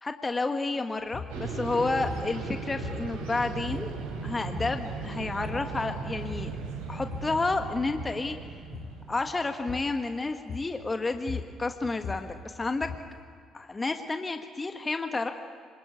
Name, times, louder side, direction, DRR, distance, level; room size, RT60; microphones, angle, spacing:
voice 1, 0.0-3.9 4.2-6.6 6.9-8.4 9.1-12.9 13.5-15.3, left 3 dB, 25° left, 6 dB, 1.5 m, -30 dB
sound 1, 1.0-1.4 2.0-2.3 2.8-3.3 3.7-4.1 4.6-4.9 5.2-5.8 6.2-6.6 6.9-7.4 7.9-8.3 8.7-9.0 9.7-10.0 10.5-10.9 11.1-13.2, left 6 dB, 55° left, 2.7 m, -40 dB
sound 2, 1.3-9.6, right 4 dB, 75° right, 3.7 m, -37 dB
26.5 x 20.5 x 8.4 m, 2.2 s
hypercardioid pair, 45°, 0 cm